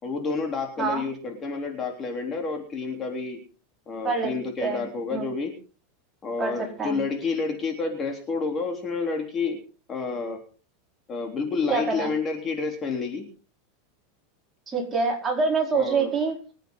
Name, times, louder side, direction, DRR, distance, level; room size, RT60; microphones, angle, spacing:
voice 1, 0.0-3.4 3.9-5.5 6.2-9.6 9.9-10.4 11.1-13.3 15.7-16.1, left 4 dB, 25° left, 3 dB, 3.5 m, -29 dB
voice 2, 6.4-7.0 11.7-12.1 14.7-16.4, right 4 dB, 15° right, 0 dB, 4.7 m, -25 dB
25.0 x 9.1 x 3.9 m, 0.37 s
supercardioid pair, 135°, 0 cm